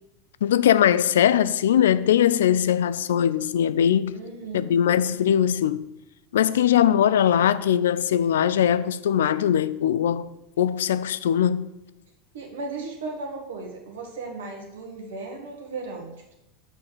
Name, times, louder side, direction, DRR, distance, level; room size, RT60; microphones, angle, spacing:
voice 1, 0.4-4.2 4.5-5.8 6.3-10.3 10.6-11.7, left 10 dB, 65° left, 0.3 m, -21 dB
voice 2, 4.1-4.7 12.3-16.3, right 3 dB, 65° right, 1.7 m, -36 dB
7.2 x 4.2 x 6.6 m
figure-of-eight pair, 85°, 0 cm